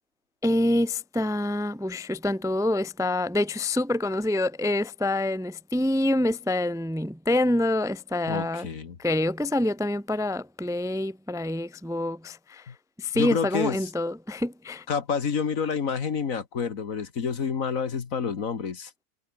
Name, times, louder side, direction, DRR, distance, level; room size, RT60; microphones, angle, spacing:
voice 1, 0.4-8.7 9.0-12.7 13.0-14.8, left 1 dB, 5° right, 0.8 m, -26 dB
voice 2, 8.3-9.0 12.7-12.8 13.1-13.9 14.9-19.0, left 6 dB, 60° left, 2.0 m, -29 dB
omnidirectional pair, 1.6 m